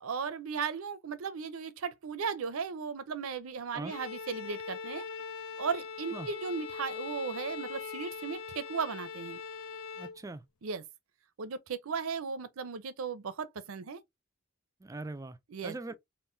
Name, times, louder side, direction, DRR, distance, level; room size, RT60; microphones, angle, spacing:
voice 1, 0.0-5.0 5.6-9.4 10.6-10.8 11.4-14.0 15.5-15.7, right 5 dB, 80° right, 0.5 m, -36 dB
Bowed string instrument, 3.9-10.2, left 5 dB, 80° left, 0.5 m, -41 dB
voice 2, 10.0-10.4 14.8-15.4 15.6-15.9, right 2 dB, 15° right, 0.3 m, -41 dB
3.7 x 2.5 x 2.6 m
head